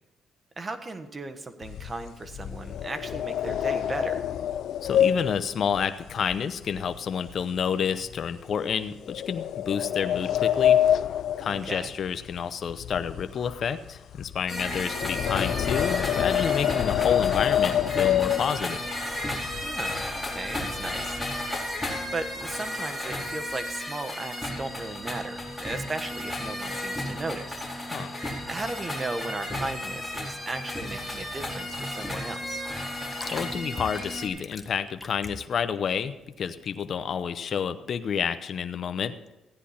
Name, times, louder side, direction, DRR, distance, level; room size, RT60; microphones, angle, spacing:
voice 1, 0.6-4.2 11.5-11.9 19.6-21.2 22.1-27.7 28.5-32.6, right 2 dB, 30° right, 7 dB, 1.3 m, -36 dB
sound 1, 1.6-7.0 7.3-7.6 8.1-8.2 9.1-12.4 12.6-18.9 19.5-19.6 19.9-20.2 20.5-21.2, left 10 dB, 75° left, 0.4 m, -26 dB
voice 2, 4.8-10.8 11.4-18.8 27.9-28.1 33.3-39.1, left 7 dB, 55° left, 11 dB, 0.7 m, -29 dB
sound 2, 14.5-34.3, left 1 dB, 5° left, 4.1 m, -33 dB
sound 3, 31.6-37.3, left 3 dB, 20° left, 1.3 m, -43 dB
15.5 x 10.0 x 4.3 m, 1.0 s
cardioid pair, 90°, 0 cm